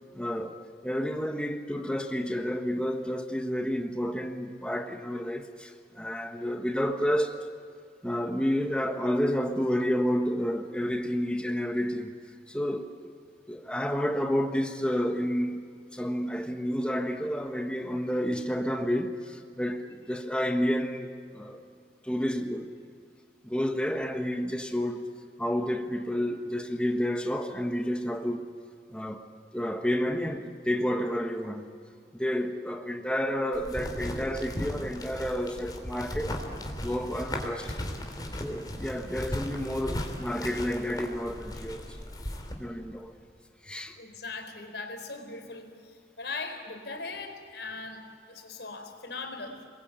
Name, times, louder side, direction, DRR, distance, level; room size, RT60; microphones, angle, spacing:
voice 1, 0.1-7.5 8.0-12.1 12.5-13.1 13.5-21.6 22.0-22.7 23.4-25.1 25.4-28.5 28.9-29.3 29.5-31.6 32.1-36.3 36.8-37.8 38.4-42.0 42.6-43.2 43.6-44.0, equal, 5° left, 1.3 m, -30 dB
sound 1, 33.5-42.5, left 1 dB, 20° left, 3.4 m, -37 dB
voice 2, 44.0-48.0 48.3-49.6, left 3 dB, 75° left, 4.2 m, -39 dB
29.5 x 22.0 x 8.9 m
head